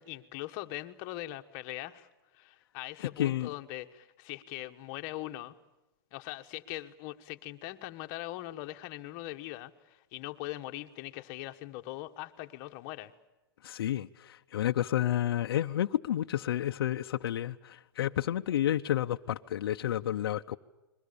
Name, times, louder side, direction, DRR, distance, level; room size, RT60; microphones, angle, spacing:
voice 1, 0.0-5.5 6.1-13.1, left 16 dB, 35° left, 1.4 m, -41 dB
voice 2, 3.2-3.5 13.6-20.6, left 12 dB, 75° left, 0.8 m, -30 dB
29.5 x 22.0 x 6.9 m
supercardioid pair, 160°, 12 cm